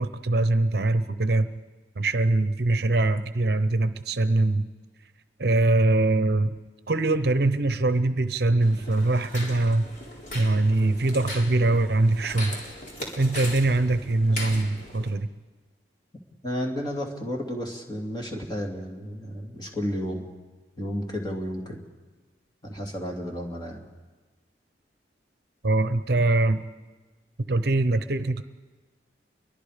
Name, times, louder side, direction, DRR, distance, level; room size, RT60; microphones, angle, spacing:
voice 1, 0.0-1.5 2.0-4.7 5.4-6.5 6.9-9.8 10.3-12.6 13.2-15.3 25.6-26.6 27.4-28.4, right 2 dB, 60° right, 11 dB, 0.8 m, -23 dB
sound 1, 8.6-15.1, left 1 dB, 40° left, 4.4 m, -38 dB
voice 2, 16.4-20.3 20.8-21.8 22.6-23.9, equal, 25° left, 1 dB, 2.7 m, -32 dB
29.0 x 23.0 x 5.1 m, 1.3 s
head